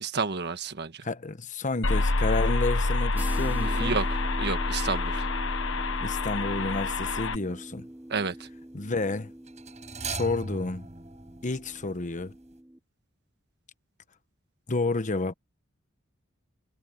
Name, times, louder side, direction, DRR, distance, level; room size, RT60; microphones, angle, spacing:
voice 1, 0.0-1.1 3.6-4.1 4.4-5.2 8.1-8.3, right 4 dB, 55° right, 1.4 m, -30 dB
voice 2, 1.0-4.0 6.0-7.9 8.7-9.3 10.0-10.9 11.4-12.3 14.7-15.3, left 3 dB, 40° left, 1.0 m, -30 dB
sound 1, 1.8-7.4, left 2 dB, 70° left, 1.3 m, -27 dB
sound 2, 3.2-12.8, right 1 dB, 10° right, 0.9 m, -43 dB
sound 3, 7.0-7.3 9.5-12.3 12.5-12.6, right 4 dB, 35° right, 7.4 m, -39 dB
head